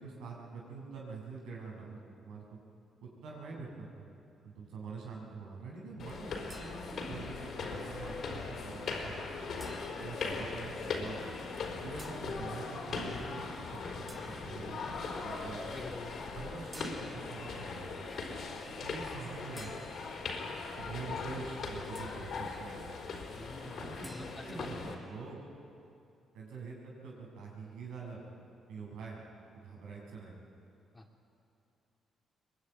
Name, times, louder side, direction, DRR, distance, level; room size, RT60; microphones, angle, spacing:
voice 1, 0.0-2.6 3.0-4.1 4.4-9.2 10.0-11.2 11.8-14.9 15.2-15.6 16.3-17.9 18.8-19.9 20.8-22.9 23.6-24.1 24.4-25.4 26.3-28.2 28.7-29.2 29.5-30.4, right 4 dB, 85° right, -2 dB, 7.1 m, -45 dB
sound 1, 6.0-24.9, left 4 dB, 60° left, 4.5 m, -40 dB
sound 2, 6.5-7.2 9.6-10.2 12.0-12.4 14.1-14.6 16.7-17.4 19.6-20.3 21.9-22.4 24.0-24.3, right 2 dB, 20° right, 2.9 m, -53 dB
voice 2, 15.7-16.1 18.1-18.2 23.4-24.7 30.9-31.1, left 2 dB, 20° left, 1 dB, 2.9 m, -47 dB
23.5 x 20.5 x 9.5 m, 2.6 s
cardioid pair, 90°, 0 cm